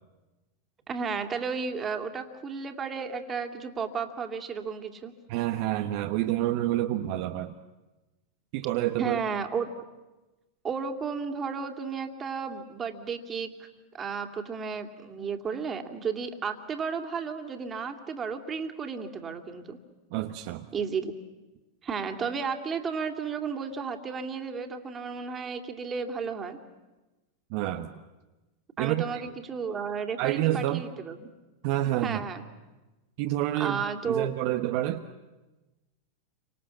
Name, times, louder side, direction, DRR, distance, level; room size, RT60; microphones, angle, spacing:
voice 1, 0.9-5.1 9.0-9.7 10.6-13.7 13.9-19.8 20.7-21.1 21.8-26.6 28.8-31.3 32.0-32.4 33.6-34.3, right 5 dB, 25° right, 5 dB, 2.8 m, -33 dB
voice 2, 5.3-7.6 8.5-9.2 20.1-20.7 27.5-28.0 28.8-29.1 30.2-30.8 31.6-32.2 33.2-35.1, right 14 dB, 55° right, 5 dB, 1.2 m, -28 dB
29.5 x 25.5 x 7.3 m, 1.1 s
hypercardioid pair, 95°, 0 cm